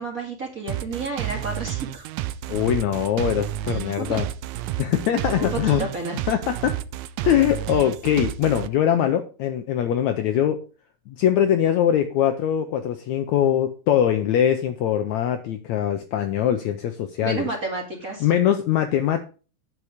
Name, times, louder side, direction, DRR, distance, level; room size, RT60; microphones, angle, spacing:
voice 1, 0.0-2.0 4.0-4.2 5.3-6.2 17.2-18.3, right 3 dB, 30° right, 0 dB, 2.2 m, -31 dB
sound 1, 0.7-8.7, right 14 dB, 80° right, 1.8 m, -30 dB
voice 2, 2.5-4.3 4.8-5.9 6.3-6.8 7.2-10.6 11.1-17.5 18.2-19.3, left 10 dB, 75° left, 7 dB, 1.8 m, -22 dB
9.4 x 7.1 x 5.0 m, 0.36 s
omnidirectional pair, 3.9 m